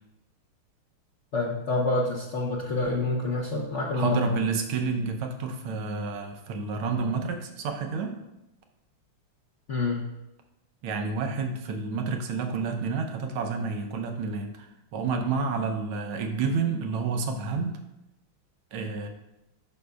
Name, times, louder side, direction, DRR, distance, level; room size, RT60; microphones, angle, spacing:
voice 1, 1.3-4.4 9.7-10.0, left 2 dB, 50° left, -4 dB, 0.9 m, -27 dB
voice 2, 3.9-8.2 10.8-17.8 18.7-19.1, right 4 dB, 85° right, 5 dB, 1.7 m, -29 dB
11.5 x 5.3 x 2.3 m, 0.93 s
omnidirectional pair, 2.3 m